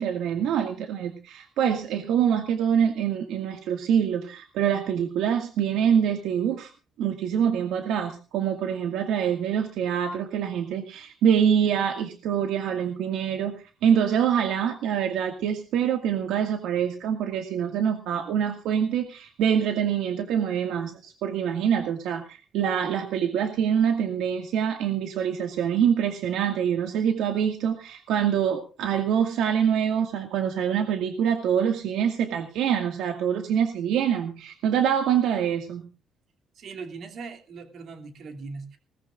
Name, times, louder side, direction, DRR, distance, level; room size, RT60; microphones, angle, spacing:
voice 1, 0.0-6.7 7.0-13.5 13.8-35.9, right 8 dB, 85° right, 4 dB, 2.0 m, -25 dB
voice 2, 36.6-38.8, right 4 dB, 50° right, 5 dB, 2.7 m, -39 dB
20.5 x 19.0 x 2.5 m, 0.34 s
cardioid pair, 155°, 0 cm